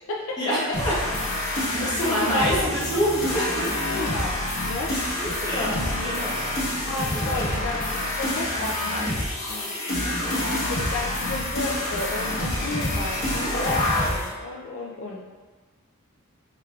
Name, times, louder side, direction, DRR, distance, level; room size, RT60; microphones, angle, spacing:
voice 1, 0.4-0.9 1.4-3.7 4.8-6.5 6.7-7.4 10.3-11.0, equal, 20° left, -7 dB, 0.9 m, -29 dB
sound 1, 0.7-14.3, left 1 dB, 35° left, 1.2 m, -27 dB
voice 2, 1.8-2.7 3.9-4.3 4.6-4.9 6.9-10.2 10.7-15.3, left 2 dB, 60° left, -2 dB, 0.4 m, -32 dB
4.5 x 3.4 x 2.4 m, 1.4 s
head